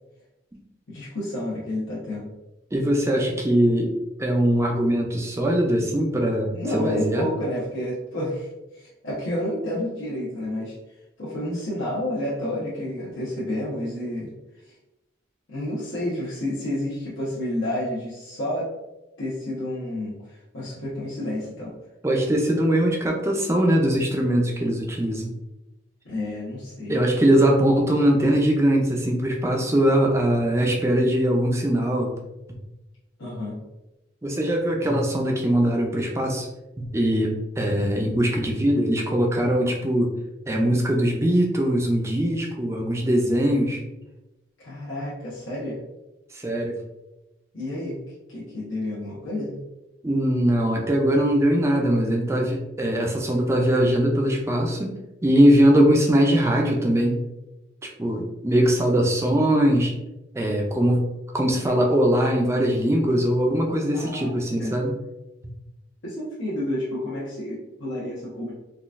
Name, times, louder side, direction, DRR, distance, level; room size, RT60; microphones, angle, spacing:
voice 1, 0.9-2.2 6.5-10.7 11.2-14.3 14.6-14.7 15.5-18.7 19.2-21.7 26.0-27.0 33.2-33.5 44.6-45.8 47.5-48.0 48.3-49.6 63.9-64.7 66.0-68.5, left 1 dB, 80° left, -8 dB, 0.9 m, -30 dB
voice 2, 2.7-3.9 4.2-7.3 22.0-25.3 26.9-32.1 34.2-36.5 36.8-40.1 40.5-43.8 46.3-46.8 50.0-57.2 58.0-59.9 60.3-61.1 61.3-64.9, equal, 15° right, 0 dB, 0.4 m, -21 dB
3.8 x 2.4 x 2.4 m, 0.98 s
head